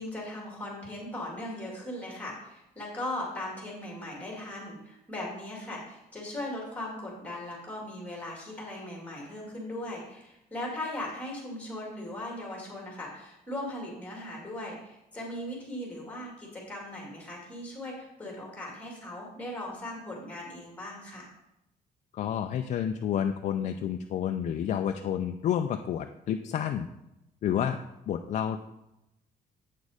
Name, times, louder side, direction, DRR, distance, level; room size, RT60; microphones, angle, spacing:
voice 1, 0.0-21.3, left 1 dB, 10° left, -2 dB, 2.4 m, -38 dB
voice 2, 22.1-26.9 27.4-27.8 28.1-28.6, left 9 dB, 45° left, 5 dB, 0.4 m, -30 dB
8.3 x 6.3 x 4.9 m, 0.87 s
cardioid pair, 175°, 17 cm